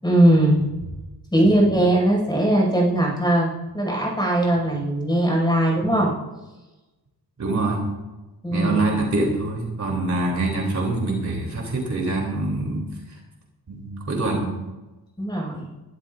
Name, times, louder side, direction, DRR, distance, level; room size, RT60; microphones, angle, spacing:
voice 1, 0.0-0.9 1.3-6.1 8.4-9.0 15.2-15.7, right 1 dB, 10° left, -2 dB, 6.0 m, -20 dB
voice 2, 7.4-7.9 8.5-13.2 13.7-14.5, right 2 dB, 45° right, -1 dB, 3.3 m, -25 dB
23.0 x 12.5 x 2.6 m, 1.1 s
wide cardioid pair, 165°, 40 cm